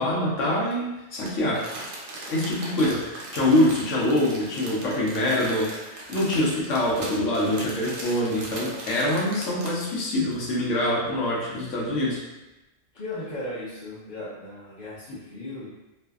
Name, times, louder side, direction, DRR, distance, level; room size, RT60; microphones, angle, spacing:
voice 1, 0.0-1.7 2.3-12.2, left 1 dB, 85° left, -5 dB, 1.0 m, -25 dB
Crumpling crinkling, 1.2-9.9 10.3-10.4, right 2 dB, 60° right, 0.6 m, -39 dB
voice 2, 12.9-15.7, left 1 dB, 45° left, -12 dB, 0.7 m, -37 dB
2.6 x 2.1 x 2.3 m, 1.0 s
omnidirectional pair, 1.2 m